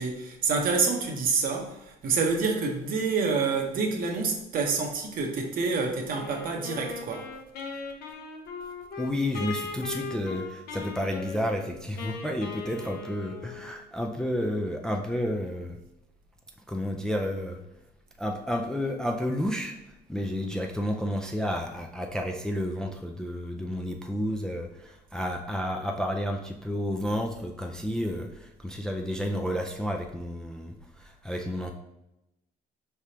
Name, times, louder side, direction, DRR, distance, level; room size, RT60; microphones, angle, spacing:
voice 1, 0.0-7.3, right 4 dB, 55° right, 2 dB, 0.9 m, -27 dB
Wind instrument woodwind instrument, 6.1-13.8, left 5 dB, 70° left, 0.8 m, -39 dB
voice 2, 9.0-15.8 16.7-17.6 18.2-31.7, equal, 5° left, 2 dB, 0.4 m, -31 dB
4.7 x 3.4 x 2.8 m, 0.89 s
cardioid pair, 110°, 17 cm